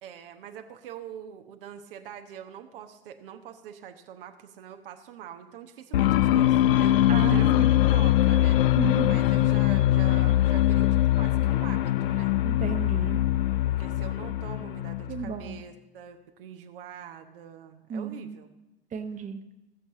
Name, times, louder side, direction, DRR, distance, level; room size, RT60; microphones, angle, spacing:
voice 1, 0.0-8.6 9.0-12.3 13.7-18.5, right 9 dB, 60° right, 5 dB, 1.1 m, -44 dB
sound 1, 5.9-15.5, left 13 dB, 65° left, 0.5 m, -22 dB
voice 2, 7.1-7.7 8.7-9.2 12.4-13.2 15.1-15.6 17.9-18.4 18.9-19.4, right 6 dB, 25° right, 7 dB, 1.2 m, -33 dB
16.5 x 7.0 x 7.5 m, 0.99 s
figure-of-eight pair, 80°, 31 cm